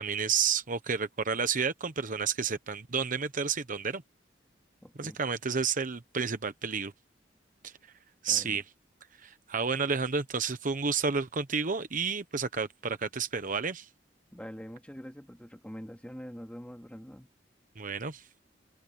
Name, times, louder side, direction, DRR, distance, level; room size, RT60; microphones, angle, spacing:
voice 1, 0.0-4.0 5.0-6.9 7.6-7.7 8.2-8.6 9.2-13.9 17.8-18.2, right 5 dB, 50° right, 1.0 m, -31 dB
voice 2, 4.8-5.2 8.3-8.6 14.3-17.3, equal, 5° left, 2.7 m, -44 dB
head